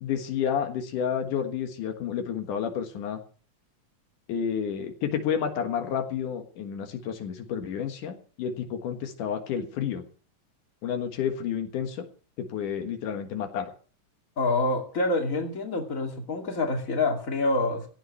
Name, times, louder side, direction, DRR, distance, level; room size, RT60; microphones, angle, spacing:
voice 1, 0.0-3.2 4.3-10.0 10.8-12.1 12.4-13.7, left 8 dB, 85° left, 5 dB, 3.1 m, -30 dB
voice 2, 14.4-17.9, left 2 dB, 25° left, 2 dB, 2.7 m, -26 dB
16.0 x 5.9 x 9.5 m, 0.41 s
omnidirectional pair, 3.6 m